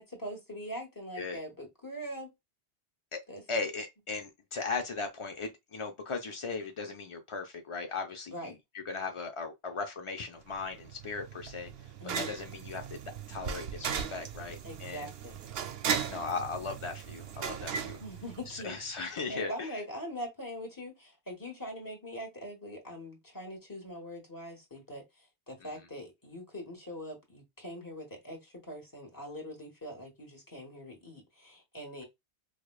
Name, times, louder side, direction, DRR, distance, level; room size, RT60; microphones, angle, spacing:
voice 1, 0.0-2.3 3.3-3.4 8.3-8.5 12.0-12.3 14.6-15.4 18.0-18.8 19.3-32.0, equal, 20° left, 1.2 m, -42 dB
voice 2, 3.5-11.7 12.2-13.0 13.3-15.1 16.0-18.0 18.5-19.8, left 4 dB, 60° left, 0.3 m, -37 dB
sound 1, 10.5-18.9, right 7 dB, 65° right, 0.8 m, -37 dB
4.8 x 2.2 x 2.3 m
omnidirectional pair, 1.2 m